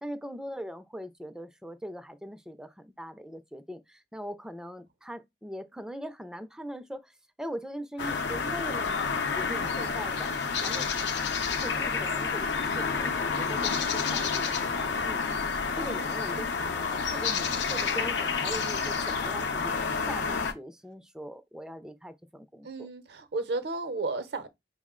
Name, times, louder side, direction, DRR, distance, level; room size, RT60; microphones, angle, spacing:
voice 1, 0.0-9.1 9.4-10.3 10.6-10.9 11.6-19.7 20.1-22.9, equal, 5° right, 0.3 m, -41 dB
sound 1, 8.0-20.5, left 5 dB, 90° left, 0.6 m, -29 dB
voice 2, 22.6-24.5, right 3 dB, 65° right, 0.6 m, -33 dB
5.4 x 2.0 x 3.6 m
head